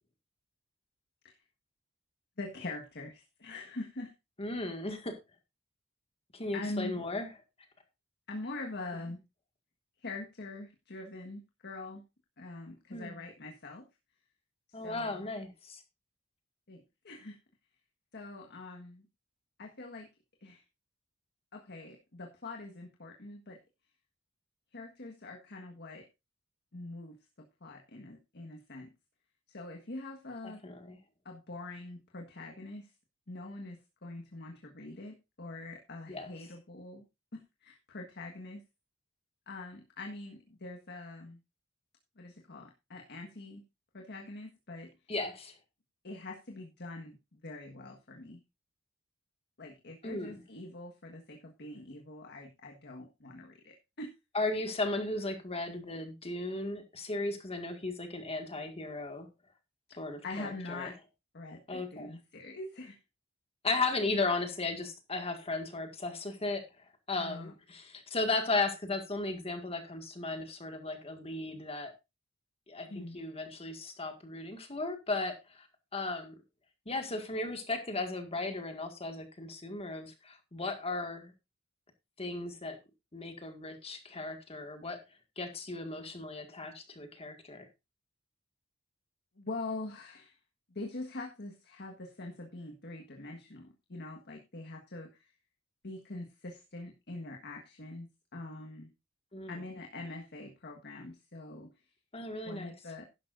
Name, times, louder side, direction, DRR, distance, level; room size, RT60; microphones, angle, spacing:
voice 1, 2.4-4.1 6.5-7.0 8.3-9.2 10.0-12.0 12.4-13.9 14.8-15.3 16.7-17.4 18.1-19.1 19.6-20.1 20.4-20.6 21.5-23.6 24.7-26.1 26.7-27.2 27.6-28.9 29.5-30.6 31.2-32.9 33.3-37.0 37.3-38.6 39.5-41.4 42.2-43.6 43.9-44.9 46.0-48.4 49.6-54.1 59.9-60.0 60.2-60.9 61.3-63.0 67.2-67.5 72.9-73.2 89.4-90.4 90.7-95.3 95.8-98.9 99.5-101.7 102.4-103.0, left 2 dB, 55° left, 2 dB, 1.5 m, -44 dB
voice 2, 4.4-5.1 6.3-7.3 12.9-13.2 14.7-15.8 30.4-31.0 36.1-36.3 45.1-45.6 50.0-50.4 54.3-59.3 59.9-60.9 61.7-62.1 63.6-71.9 72.7-75.7 75.9-76.3 76.9-81.3 82.2-82.8 83.1-85.0 85.4-87.7 99.3-99.6 102.1-102.7, left 2 dB, 30° left, 6 dB, 1.8 m, -36 dB
11.5 x 11.5 x 2.6 m, 0.25 s
head